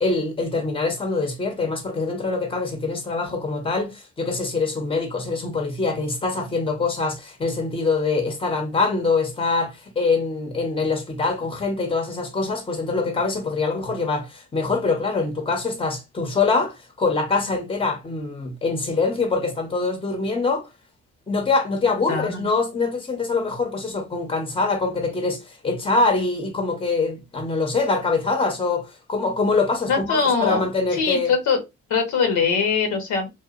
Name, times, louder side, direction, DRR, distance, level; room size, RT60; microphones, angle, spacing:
voice 1, 0.0-20.7 21.3-31.3, left 3 dB, 20° left, 0.9 m, -24 dB
voice 2, 22.1-22.4 29.9-30.6 30.9-31.6 31.9-33.3, left 5 dB, 75° left, 1.1 m, -22 dB
2.7 x 2.4 x 2.4 m
cardioid pair, 90°, 30 cm